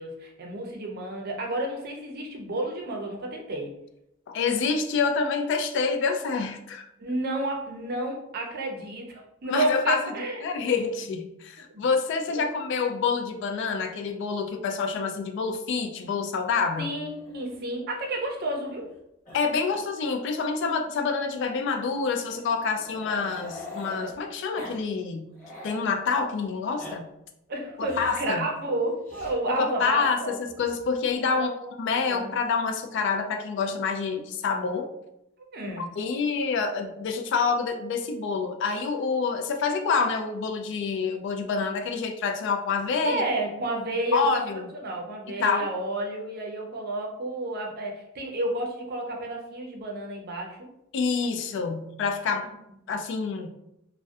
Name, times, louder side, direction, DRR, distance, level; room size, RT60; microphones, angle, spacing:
voice 1, 0.0-3.7 7.0-10.4 11.7-11.8 12.3-12.4 16.8-18.9 27.5-30.4 31.2-31.7 32.1-32.3 35.4-35.9 43.0-44.4 44.7-50.7 52.4-52.5, right 1 dB, 50° right, 1 dB, 0.5 m, -31 dB
voice 2, 4.3-6.9 9.4-10.0 10.4-16.9 19.3-25.3 25.6-27.1 27.8-28.5 29.5-31.5 31.8-34.9 35.8-43.2 44.1-44.6 45.4-45.7 50.9-52.5 52.9-53.5, left 5 dB, 60° left, 6 dB, 0.3 m, -27 dB
Growling, 17.1-19.0 19.2-19.4 19.7-19.8 20.2-20.3 21.3-24.1 24.5-24.8 25.1-25.8 26.5-26.9 27.8-28.3 29.0-29.3 30.5-31.1, left 1 dB, 40° left, 0.8 m, -44 dB
2.5 x 2.1 x 2.3 m, 0.83 s
head